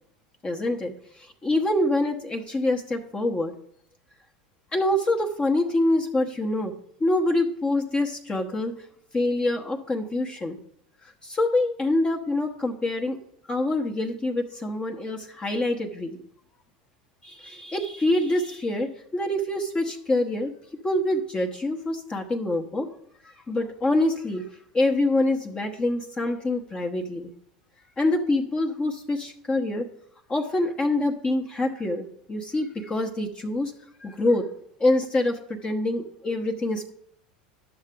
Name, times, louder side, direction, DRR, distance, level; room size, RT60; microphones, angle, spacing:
voice 1, 0.4-3.5 4.7-6.7 7.0-8.8 9.1-10.6 11.0-13.2 13.5-16.2 17.2-20.5 20.8-22.9 23.2-24.5 24.7-27.3 28.0-29.9 30.3-33.7 34.0-34.5 34.8-36.9, left 2 dB, 20° left, 2 dB, 1.0 m, -25 dB
11.5 x 6.5 x 3.7 m, 0.67 s
hypercardioid pair, 90°, 4 cm